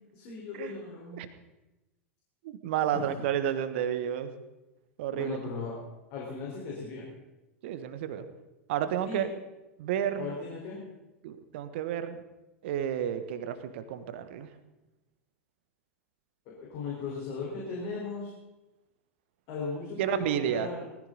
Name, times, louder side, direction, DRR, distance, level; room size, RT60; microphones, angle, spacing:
voice 1, 0.1-1.2 2.9-3.0 5.1-5.8 6.1-7.0 9.0-9.3 10.2-10.8 16.5-18.3 19.5-20.8, left 4 dB, 45° left, -4 dB, 4.5 m, -37 dB
voice 2, 2.4-4.3 5.0-5.4 7.6-8.2 8.7-9.3 9.8-10.4 11.2-12.2 12.6-14.5 20.0-20.7, right 9 dB, 50° right, 11 dB, 1.3 m, -31 dB
19.5 x 14.5 x 4.1 m, 1.0 s
figure-of-eight pair, 90°, 8 cm